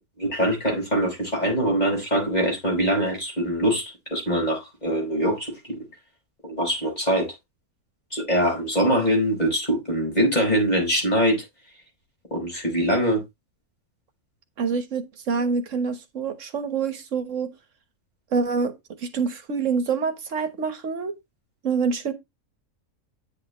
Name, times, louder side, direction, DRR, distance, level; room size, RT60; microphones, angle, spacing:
voice 1, 0.2-3.8 4.1-5.8 6.4-7.3 8.1-11.4 12.3-13.2, equal, 30° left, 4.7 m, -23 dB
voice 2, 14.6-17.5 18.3-18.7 19.0-21.2 21.6-22.1, right 5 dB, 60° right, 1.6 m, -26 dB
9.6 x 7.3 x 3.0 m
omnidirectional pair, 1.5 m